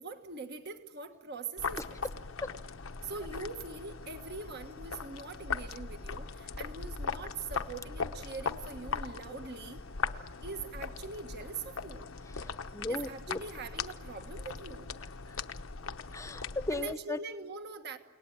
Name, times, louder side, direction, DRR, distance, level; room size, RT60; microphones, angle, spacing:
voice 1, 0.0-2.0 3.0-9.8 10.4-12.1 12.9-14.9 16.7-18.0, right 4 dB, 55° right, 7 dB, 1.5 m, -43 dB
sound 1, 1.6-17.0, left 5 dB, 80° left, 0.9 m, -39 dB
voice 2, 12.4-13.4 16.1-17.2, left 2 dB, 15° left, 12 dB, 0.9 m, -36 dB
30.0 x 19.0 x 8.8 m, 1.2 s
head